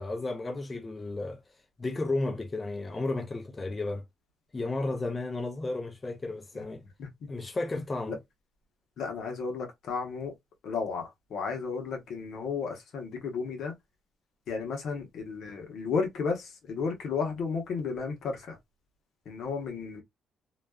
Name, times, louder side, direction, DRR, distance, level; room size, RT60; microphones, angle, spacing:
voice 1, 0.0-1.4 1.8-4.0 4.5-6.8 7.3-8.2, left 2 dB, 25° left, 0.6 m, -33 dB
voice 2, 9.0-10.3 10.6-13.7 14.5-18.6 19.3-20.0, left 5 dB, 70° left, 0.9 m, -33 dB
2.4 x 2.3 x 2.3 m
cardioid pair, 90°, 0 cm